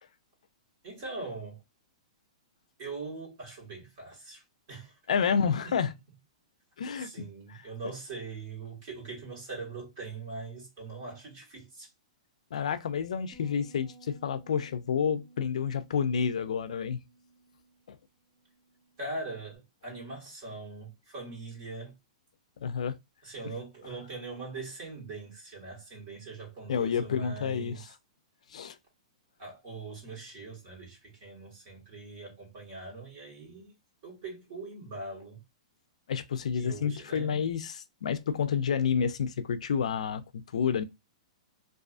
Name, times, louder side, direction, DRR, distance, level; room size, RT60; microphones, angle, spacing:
voice 1, 0.8-1.6 2.8-5.0 5.3-5.4 5.6-5.7 7.0-11.9 19.0-21.9 23.2-27.9 29.4-33.7 34.0-35.4 36.6-37.4, right 3 dB, 30° right, 1.3 m, -42 dB
voice 2, 5.1-5.9 6.8-7.1 7.5-7.6 12.5-17.0 17.9-18.0 22.6-23.0 26.7-27.9 28.5-28.8 36.1-40.2 40.5-40.8, left 7 dB, 75° left, 0.3 m, -29 dB
sound 1, 13.3-19.6, right 2 dB, 5° left, 0.7 m, -57 dB
2.4 x 2.3 x 2.4 m
hypercardioid pair, 180°, 4 cm